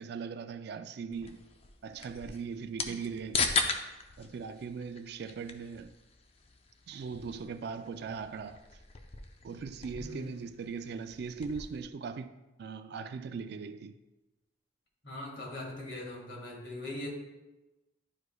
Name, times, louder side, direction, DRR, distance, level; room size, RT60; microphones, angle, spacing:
voice 1, 0.0-1.4 1.8-3.6 4.2-5.9 6.9-8.8 9.4-14.0, right 5 dB, 55° right, 0.3 m, -40 dB
sound 1, 1.1-11.8, left 4 dB, 30° left, 0.4 m, -39 dB
voice 2, 10.0-10.3 15.0-17.1, left 1 dB, 70° left, 1.9 m, -41 dB
11.0 x 4.8 x 2.3 m
head